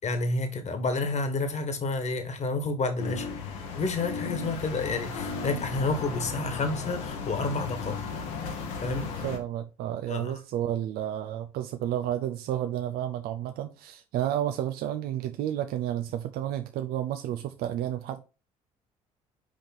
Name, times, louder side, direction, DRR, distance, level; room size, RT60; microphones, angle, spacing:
voice 1, 0.0-3.3 3.8-8.0 8.8-9.1 10.1-10.3, left 3 dB, 40° left, 1.7 m, -30 dB
sound 1, 3.0-9.4, left 4 dB, 80° left, 1.5 m, -35 dB
voice 2, 9.2-18.2, right 11 dB, 65° right, 0.6 m, -31 dB
6.4 x 5.0 x 4.2 m
hypercardioid pair, 55°, 17 cm